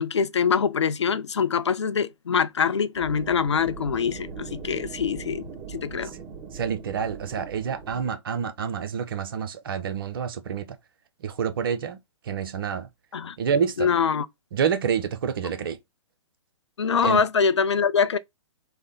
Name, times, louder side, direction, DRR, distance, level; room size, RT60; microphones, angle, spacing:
voice 1, 0.0-6.1 13.1-13.4 13.8-14.3 16.8-18.2, left 6 dB, 65° left, 0.4 m, -24 dB
sound 1, 2.9-8.1, right 6 dB, 15° right, 1.3 m, -40 dB
voice 2, 6.5-10.8 11.2-12.0 12.2-12.9 13.4-13.9 14.5-15.8 17.0-17.2, right 7 dB, 45° right, 0.6 m, -28 dB
3.3 x 2.1 x 3.9 m
figure-of-eight pair, 120°, 16 cm